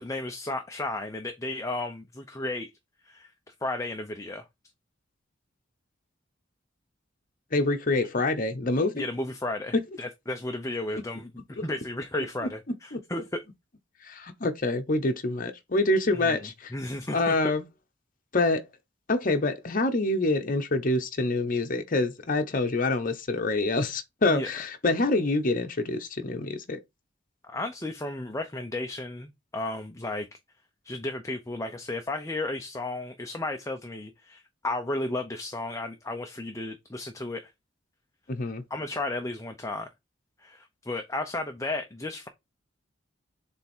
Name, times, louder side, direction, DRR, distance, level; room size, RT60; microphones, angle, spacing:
voice 1, 0.0-2.7 3.0-4.5 8.9-13.4 16.1-17.5 24.3-24.5 27.4-30.3 30.8-37.5 38.7-39.9 40.4-42.3, left 2 dB, 15° left, 0.8 m, -34 dB
voice 2, 7.5-9.0 11.6-11.7 12.9-13.2 14.0-16.7 17.1-17.6 18.3-18.7 19.1-26.8 38.3-38.6, left 2 dB, 45° left, 1.0 m, -26 dB
7.5 x 3.6 x 4.4 m
head